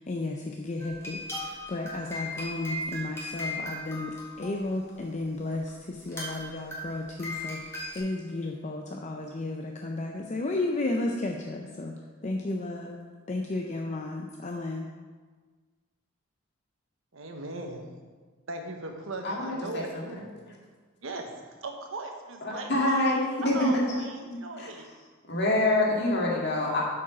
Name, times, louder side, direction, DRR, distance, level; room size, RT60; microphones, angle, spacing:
voice 1, 0.0-11.9 12.2-13.0 13.3-14.9, left 2 dB, 35° left, 2 dB, 0.5 m, -33 dB
sound 1, 0.8-5.0 5.7-5.8 6.0-8.0, left 1 dB, 15° left, 1.7 m, -37 dB
voice 2, 17.1-17.8 18.5-20.3 21.0-21.3 21.6-22.9 23.4-24.9, right 2 dB, 65° right, 3 dB, 1.1 m, -38 dB
voice 3, 19.2-20.0 22.4-23.9 24.6-24.7 25.3-26.8, left 1 dB, 55° left, -3 dB, 1.9 m, -26 dB
7.9 x 5.1 x 6.0 m, 1.4 s
head